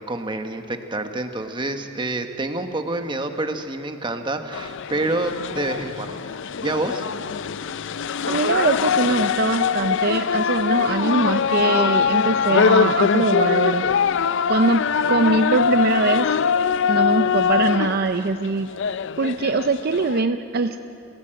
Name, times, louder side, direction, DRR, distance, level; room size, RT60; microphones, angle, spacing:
voice 1, 0.0-6.2 6.6-7.0, right 2 dB, 25° right, 6 dB, 1.2 m, -27 dB
sound 1, 4.5-20.2, left 6 dB, 60° left, 0.5 m, -22 dB
voice 2, 8.3-14.1 14.5-14.8 15.1-16.4 16.9-18.7 19.2-20.8, right 3 dB, 50° right, 8 dB, 0.6 m, -22 dB
28.5 x 16.0 x 7.7 m, 2.8 s
head